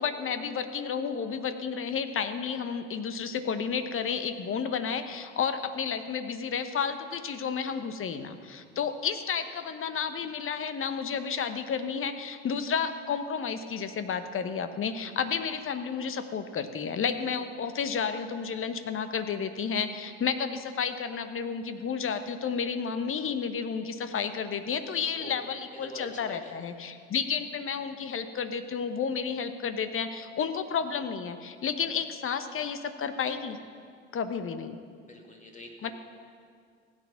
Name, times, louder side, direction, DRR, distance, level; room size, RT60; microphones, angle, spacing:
voice 1, 0.0-33.6 34.1-34.8 35.8-35.9, left 6 dB, 35° left, 10 dB, 1.1 m, -31 dB
voice 2, 25.7-26.5 35.1-35.9, left 1 dB, 20° left, 1 dB, 2.5 m, -45 dB
16.0 x 9.0 x 5.7 m, 2.2 s
figure-of-eight pair, 60°, 35 cm